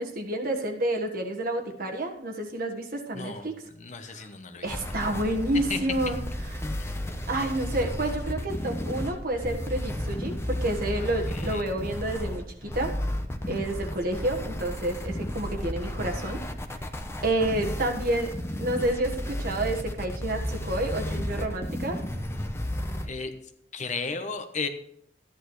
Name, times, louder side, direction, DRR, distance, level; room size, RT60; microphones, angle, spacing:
voice 1, 0.0-3.6 4.1-4.3 4.6-6.2 6.5-6.7 7.3-12.9 13.5-16.4 17.2-18.3 18.6-22.0, right 1 dB, 55° right, 3 dB, 1.4 m, -29 dB
voice 2, 3.1-3.5 3.7-4.9 5.7-5.8 11.0-11.7 23.0-23.3 23.7-24.7, left 4 dB, 45° left, 8 dB, 0.9 m, -35 dB
sound 1, 4.7-23.1, left 1 dB, 15° left, 0.8 m, -33 dB
13.5 x 10.5 x 3.2 m, 0.69 s
head